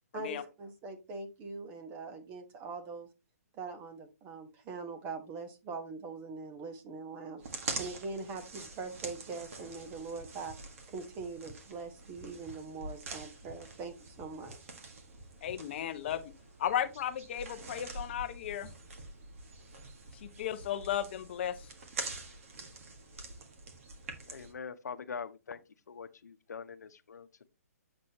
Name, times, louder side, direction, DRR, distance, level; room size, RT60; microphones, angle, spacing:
voice 1, 0.1-3.1 3.5-7.4 7.8-10.5 10.9-14.6, right 4 dB, 20° right, 1.1 m, -42 dB
sound 1, 7.4-24.5, right 3 dB, 55° right, 1.6 m, -45 dB
sound 2, 10.2-10.6 11.2-11.6 12.2-12.6 13.2-13.6 14.2-14.6 15.2-15.6, right 1 dB, 5° left, 0.8 m, -52 dB
voice 2, 15.4-16.2 16.6-18.7 20.1-21.7, left 10 dB, 40° left, 0.6 m, -35 dB
voice 3, 24.2-25.6 25.9-27.5, left 6 dB, 85° left, 0.8 m, -43 dB
7.5 x 6.1 x 2.8 m
hypercardioid pair, 155°, 9 cm